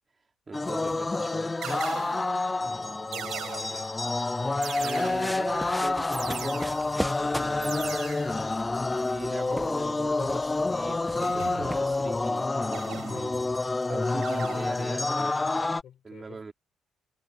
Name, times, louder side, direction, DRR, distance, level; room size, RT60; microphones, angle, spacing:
sound 1, 0.5-15.8, left 3 dB, 20° left, 0.5 m, -28 dB
voice 1, 0.5-1.5 4.8-8.1 8.9-15.3 16.0-16.5, right 4 dB, 30° right, 5.2 m, -41 dB
sound 2, 0.8-1.1 1.6-2.5 3.1-4.0 4.6-5.5 6.1-7.0 7.6-8.5 11.2-12.0 12.7-13.6 14.2-15.0, right 12 dB, 80° right, 6.5 m, -40 dB
voice 2, 2.9-4.0 15.2-16.5, left 10 dB, 70° left, 6.5 m, -50 dB
sound 3, 4.8-12.3, equal, ahead, 1.3 m, -40 dB
cardioid pair, 90°, 0 cm